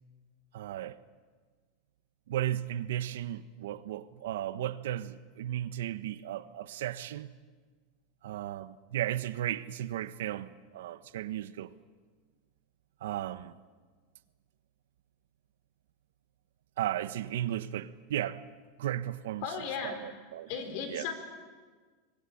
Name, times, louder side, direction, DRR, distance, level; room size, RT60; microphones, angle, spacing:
voice 1, 0.5-1.0 2.3-7.3 8.2-11.7 13.0-13.5 16.8-18.5 18.8-19.4 19.8-20.5 20.9-21.0, right 12 dB, 80° right, 1.1 m, -35 dB
voice 2, 19.4-20.0 20.5-21.1, left 6 dB, 45° left, 4.7 m, -35 dB
25.0 x 21.0 x 8.7 m
supercardioid pair, 170°, 0 cm